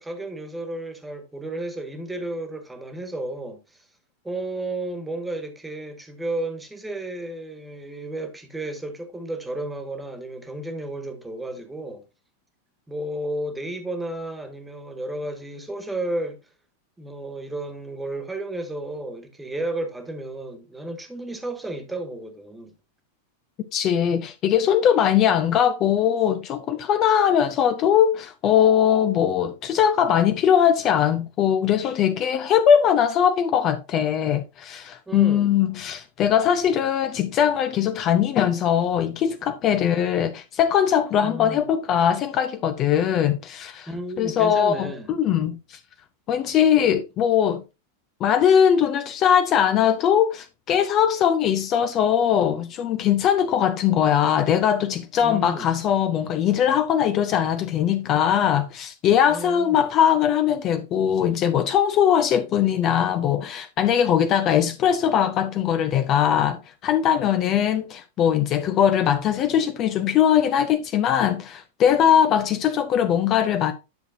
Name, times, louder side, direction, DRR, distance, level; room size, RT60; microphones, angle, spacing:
voice 1, 0.0-3.8 4.2-12.0 12.9-16.4 17.0-22.7 35.1-35.5 39.8-40.1 41.2-41.6 43.9-45.1 55.2-55.7 59.3-59.9 67.3-67.6 72.1-72.2, right 1 dB, 10° right, 1.7 m, -33 dB
voice 2, 23.7-43.9 44.2-45.8 46.3-47.6 48.2-73.7, left 9 dB, 35° left, 0.7 m, -21 dB
10.5 x 6.5 x 2.6 m
figure-of-eight pair, 90°, 0 cm